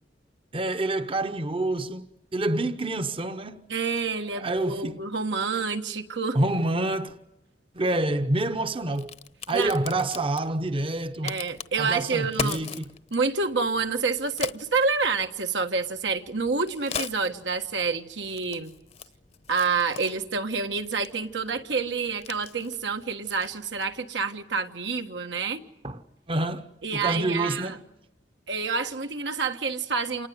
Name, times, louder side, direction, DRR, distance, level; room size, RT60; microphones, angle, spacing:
voice 1, 0.5-2.1 2.3-3.7 4.3-5.0 6.3-7.2 7.7-9.2 9.5-11.4 11.8-12.9 25.8-26.0 26.3-27.8, right 2 dB, 30° right, 0.9 m, -27 dB
voice 2, 3.7-6.4 9.5-9.7 11.2-12.6 13.1-18.7 19.5-25.6 26.8-27.8 28.5-30.3, right 4 dB, 80° right, 1.5 m, -28 dB
Crack, 7.9-24.0, left 6 dB, 35° left, 0.9 m, -41 dB
27.5 x 19.5 x 9.5 m
head